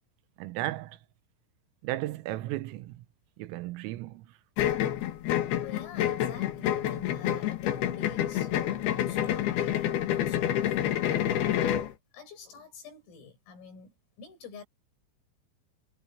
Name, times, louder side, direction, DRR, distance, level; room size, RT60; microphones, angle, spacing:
voice 1, 0.4-1.0 1.8-3.0 3.4-4.3, right 16 dB, 85° right, 3.7 m, -35 dB
sound 1, 4.6-11.9, left 11 dB, 60° left, 3.1 m, -28 dB
voice 2, 5.6-11.9 12.1-14.6, left 5 dB, 85° left, 9.5 m, -48 dB
omnidirectional pair, 5.8 m